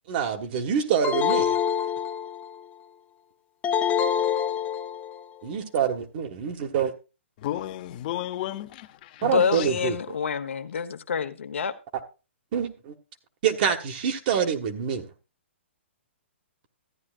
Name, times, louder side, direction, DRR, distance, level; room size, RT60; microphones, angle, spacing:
voice 1, 0.1-1.6 5.4-6.9 9.2-10.2 12.5-12.9 13.4-15.1, right 8 dB, 45° right, 1.7 m, -26 dB
sound 1, 1.0-2.6 3.6-5.2, left 8 dB, 20° left, 0.7 m, -26 dB
voice 2, 7.4-9.2 9.5-9.7, left 13 dB, 40° left, 1.0 m, -33 dB
voice 3, 9.2-11.7, left 7 dB, 80° left, 1.2 m, -27 dB
14.5 x 9.9 x 2.5 m
hypercardioid pair, 140°, 7 cm